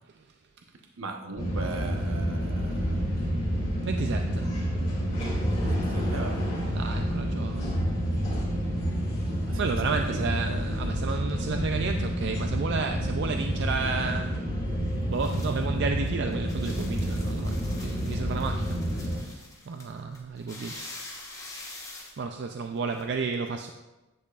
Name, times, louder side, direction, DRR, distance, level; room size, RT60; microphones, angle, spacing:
voice 1, 1.0-3.1 5.7-6.6 9.4-10.3, right 2 dB, 75° right, 0.9 m, -38 dB
sound 1, 1.4-19.2, equal, 35° left, 2.5 m, -29 dB
voice 2, 3.9-4.5 6.7-7.7 9.5-14.4 15.1-20.9 22.2-23.7, right 4 dB, 55° right, 0.4 m, -32 dB
sound 2, 14.2-23.0, left 2 dB, 15° left, 1.0 m, -46 dB
10.5 x 7.5 x 2.4 m
head